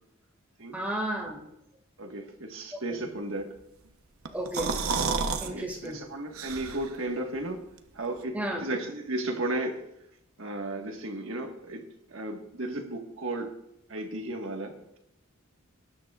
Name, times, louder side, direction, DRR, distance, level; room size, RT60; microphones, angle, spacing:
voice 1, 0.7-1.4 4.3-4.7 5.4-6.0 8.3-8.6, right 1 dB, 10° right, 0 dB, 2.1 m, -32 dB
voice 2, 2.0-3.6 5.4-7.6 7.9-9.8 10.4-13.6 13.9-14.8, right 2 dB, 65° right, 3 dB, 1.6 m, -34 dB
sound 1, 4.3-5.5 5.9-6.0 6.3-7.0, right 5 dB, 85° right, 0.9 m, -30 dB
19.0 x 9.7 x 2.4 m, 0.82 s
head